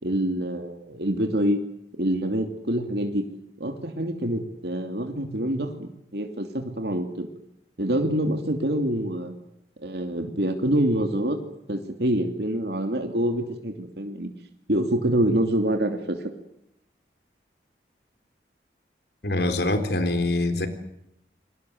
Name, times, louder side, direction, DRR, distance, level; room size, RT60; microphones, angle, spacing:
voice 1, 0.0-1.6 2.0-3.2 3.6-7.3 7.8-9.3 9.8-11.4 11.7-14.3 14.7-16.3, right 1 dB, 70° right, 5 dB, 2.8 m, -26 dB
voice 2, 19.2-20.7, left 2 dB, 70° left, 10 dB, 3.6 m, -24 dB
28.0 x 23.0 x 7.9 m, 0.79 s
head